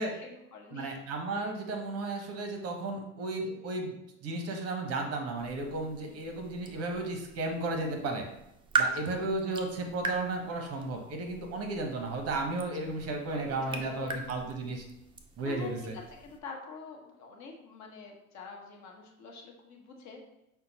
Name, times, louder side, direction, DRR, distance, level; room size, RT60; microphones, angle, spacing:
voice 1, 0.1-0.9 3.4-3.6 6.0-6.3 8.8-9.2 12.8-14.3 15.4-20.2, left 4 dB, 40° left, 1 dB, 1.0 m, -47 dB
voice 2, 0.7-3.9 4.2-8.3 8.8-14.9 15.4-15.9, right 2 dB, 35° right, 3 dB, 0.9 m, -34 dB
sound 1, 5.4-16.4, right 4 dB, 15° right, 0.3 m, -39 dB
5.6 x 2.2 x 4.0 m, 0.87 s
hypercardioid pair, 95°, 41 cm